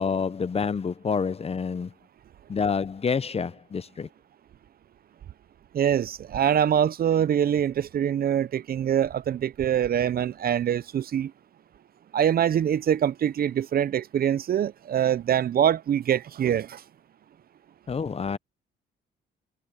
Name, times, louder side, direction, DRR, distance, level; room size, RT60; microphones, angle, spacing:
voice 1, 0.0-1.9 2.5-4.1 17.9-18.4, left 5 dB, 30° left, 0.7 m, -28 dB
voice 2, 5.7-11.3 12.1-16.8, right 9 dB, 50° right, 0.5 m, -24 dB
cardioid pair, 90°, 20 cm